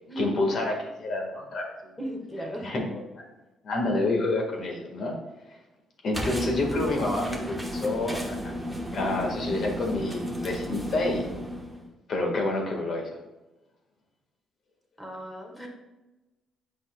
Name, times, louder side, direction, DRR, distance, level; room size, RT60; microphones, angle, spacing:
voice 1, 0.2-1.9 2.6-3.2 3.6-5.2 6.0-8.6 8.9-11.3 12.1-13.2, left 2 dB, 55° left, 1 dB, 1.6 m, -28 dB
voice 2, 2.0-2.8 15.0-15.7, right 1 dB, 10° left, 1 dB, 1.5 m, -36 dB
sound 1, 6.1-11.9, equal, 5° right, 1.1 m, -33 dB
8.1 x 5.5 x 2.3 m, 1.1 s
cardioid pair, 90°, 0 cm